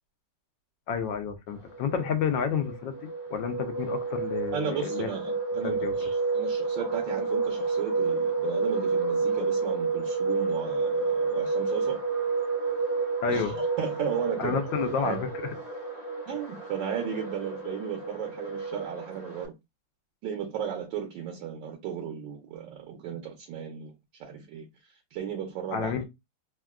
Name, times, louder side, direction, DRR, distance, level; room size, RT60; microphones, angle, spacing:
voice 1, 0.9-3.0 3.3-5.1 5.6-5.9 13.2-13.6 14.4-15.5 25.7-26.0, left 7 dB, 75° left, 1.3 m, -30 dB
sound 1, 1.7-19.4, right 4 dB, 60° left, 1.1 m, -30 dB
voice 2, 4.5-12.0 13.3-13.5 13.8-14.6 15.0-15.2 16.3-19.5 20.2-23.9 24.2-24.7 25.1-25.9, right 8 dB, 80° right, 1.3 m, -35 dB
3.5 x 2.3 x 2.3 m
omnidirectional pair, 2.0 m